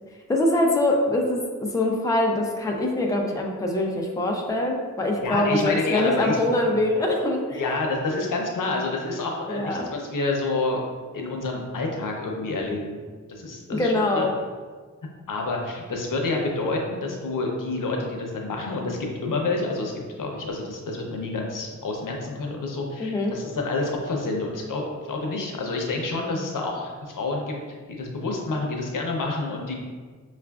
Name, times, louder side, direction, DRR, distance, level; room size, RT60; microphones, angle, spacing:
voice 1, 0.3-7.6 9.5-9.9 13.7-14.3 23.0-23.3, left 1 dB, 10° left, 0 dB, 0.4 m, -23 dB
voice 2, 5.2-6.8 7.5-10.8 11.1-13.0 13.3-14.3 15.3-29.7, left 3 dB, 90° left, 0 dB, 0.6 m, -28 dB
5.6 x 2.4 x 2.3 m, 1.5 s
wide cardioid pair, 110°, 31 cm